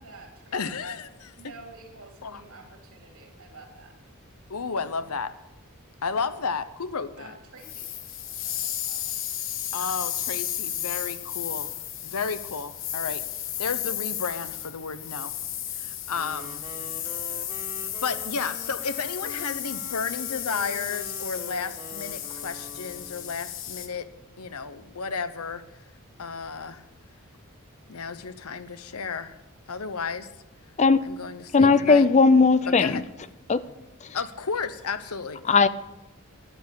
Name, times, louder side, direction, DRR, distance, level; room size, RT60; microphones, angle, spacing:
voice 1, 0.0-0.6 1.4-3.9 7.2-8.0 8.3-9.0, right 3 dB, 70° right, 1 dB, 3.6 m, -49 dB
voice 2, 0.5-1.3 2.2-2.4 4.5-5.3 6.0-7.3 9.7-11.7 12.0-15.3 15.7-16.6 18.0-24.1 24.4-25.6 26.2-26.8 27.9-29.4 29.7-30.3 31.0-32.1 32.8-33.0 34.1-35.4, left 5 dB, 90° left, 12 dB, 0.9 m, -33 dB
sound 1, 7.6-23.9, left 11 dB, 60° left, 1.4 m, -33 dB
Wind instrument woodwind instrument, 16.1-23.4, equal, 20° right, 1.8 m, -45 dB
voice 3, 31.5-33.0 33.5-33.6 34.0-34.2 35.4-35.7, left 4 dB, 30° left, 14 dB, 0.5 m, -18 dB
12.0 x 10.5 x 8.2 m, 0.97 s
head